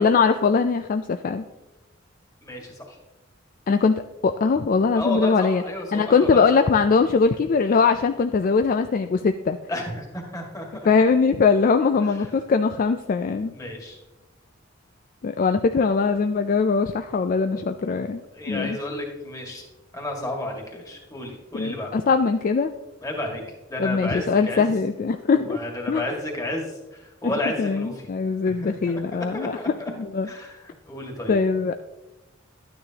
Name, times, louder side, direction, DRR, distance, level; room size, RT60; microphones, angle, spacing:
voice 1, 0.0-1.5 3.7-5.6 5.9-9.6 10.9-13.5 15.2-18.2 18.5-18.8 21.5-22.7 23.8-25.6 25.9-26.0 27.2-27.3 27.6-29.6 30.0-30.3 31.3-31.7, left 5 dB, 45° left, 8 dB, 0.3 m, -21 dB
voice 2, 2.4-3.0 5.0-6.4 9.7-10.9 13.5-14.0 17.5-19.6 19.9-21.9 23.0-23.4 23.7-24.7 25.3-27.9 28.6-29.9 30.2-30.6 30.9-31.4, left 1 dB, 15° left, 0 dB, 1.9 m, -32 dB
11.5 x 9.5 x 2.9 m, 1.0 s
head